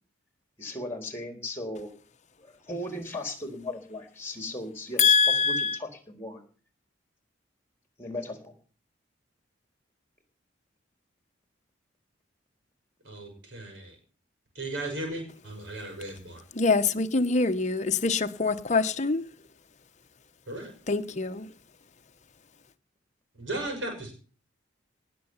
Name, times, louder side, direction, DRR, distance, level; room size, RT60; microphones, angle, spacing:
voice 1, 0.6-1.9 2.7-5.2 5.4-6.4 8.0-8.5, left 1 dB, 15° left, 3.9 m, -37 dB
voice 2, 5.0-5.8 16.5-19.2 20.9-21.5, left 4 dB, 40° left, 1.0 m, -24 dB
voice 3, 13.0-13.9 14.5-16.4 20.5-20.7 23.4-24.1, right 1 dB, 75° right, 6.3 m, -36 dB
19.0 x 7.8 x 7.2 m
head